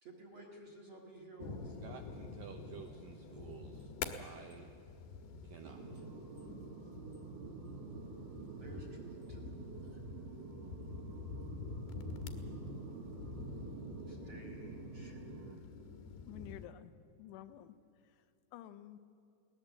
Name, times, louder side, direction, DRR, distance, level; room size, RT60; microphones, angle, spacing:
voice 1, 0.0-1.7 8.5-9.4 9.8-10.0 14.1-15.6, right 2 dB, 40° right, 1 dB, 1.9 m, -54 dB
sound 1, 1.4-16.7, left 4 dB, 70° left, 2.9 m, -47 dB
voice 2, 1.6-4.7 5.4-6.1, right 7 dB, 80° right, 4 dB, 2.0 m, -53 dB
sound 2, 5.6-15.5, right 4 dB, 60° right, 2.5 m, -48 dB
voice 3, 16.3-17.8 18.0-18.3 18.5-19.0, left 12 dB, 90° left, 10 dB, 3.4 m, -51 dB
22.5 x 18.0 x 7.7 m, 2.5 s
omnidirectional pair, 5.3 m